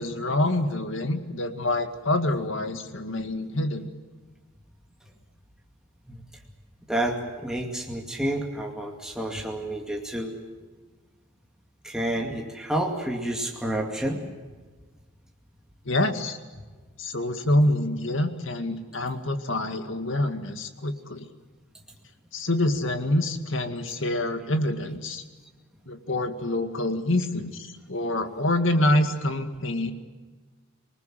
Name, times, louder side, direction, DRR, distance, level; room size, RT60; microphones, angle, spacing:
voice 1, 0.0-3.9 15.9-16.4 17.0-21.3 22.3-25.2 25.9-29.9, left 1 dB, 60° left, 7 dB, 2.0 m, -26 dB
voice 2, 6.9-10.3 11.8-14.2, right 1 dB, 5° right, 0 dB, 2.3 m, -29 dB
26.5 x 20.0 x 7.7 m, 1.4 s
head